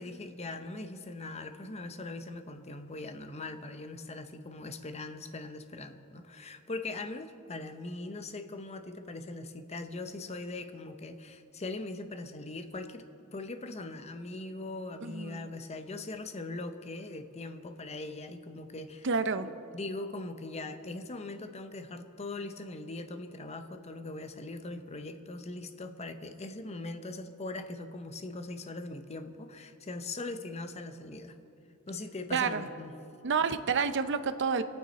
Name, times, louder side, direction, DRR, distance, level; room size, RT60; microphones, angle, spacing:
voice 1, 0.0-19.1 19.4-31.3 31.9-32.9, left 2 dB, 30° left, 8 dB, 0.7 m, -41 dB
voice 2, 15.0-15.5 19.0-19.5 32.3-32.6 33.2-34.6, right 5 dB, 55° right, 10 dB, 0.7 m, -29 dB
25.5 x 9.2 x 4.2 m, 2.8 s
head